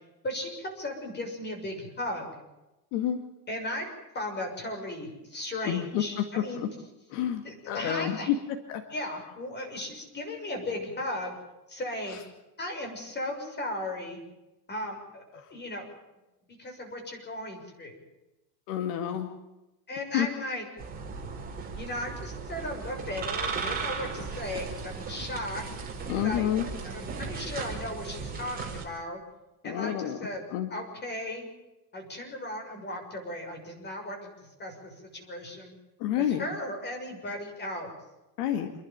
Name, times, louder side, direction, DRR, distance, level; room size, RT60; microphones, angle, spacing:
voice 1, 0.2-2.4 3.5-3.9 4.1-6.7 7.4-8.3 8.9-11.4 11.7-12.2 12.6-14.2 14.7-15.9 16.5-18.0 19.9-20.6 21.8-25.6 26.2-26.5 26.8-29.2 29.6-30.4 30.7-31.4 31.9-34.3 34.6-35.8 36.2-37.9, left 1 dB, 20° left, 3 dB, 6.4 m, -36 dB
voice 2, 5.6-6.2 6.6-6.7 7.1-8.4 8.7-8.8 12.1-12.2 18.7-19.3 20.1-20.3 26.1-26.7 29.6-30.2 30.5-30.7 36.0-36.5 38.4-38.7, left 10 dB, 65° left, 5 dB, 2.4 m, -29 dB
sound 1, 20.8-28.8, right 5 dB, 20° right, 5.5 m, -36 dB
28.5 x 11.5 x 8.9 m, 1.0 s
supercardioid pair, 140°, 49 cm